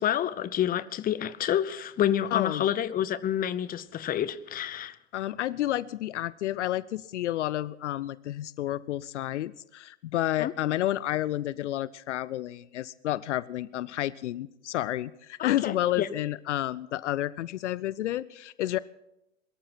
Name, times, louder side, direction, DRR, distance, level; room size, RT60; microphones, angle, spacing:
voice 1, 0.0-5.0 10.4-10.5 15.4-16.1, left 10 dB, 25° left, 0.8 m, -28 dB
voice 2, 2.3-2.7 5.1-18.8, left 13 dB, 70° left, 0.6 m, -30 dB
22.5 x 13.5 x 4.2 m
figure-of-eight pair, 85°, 38 cm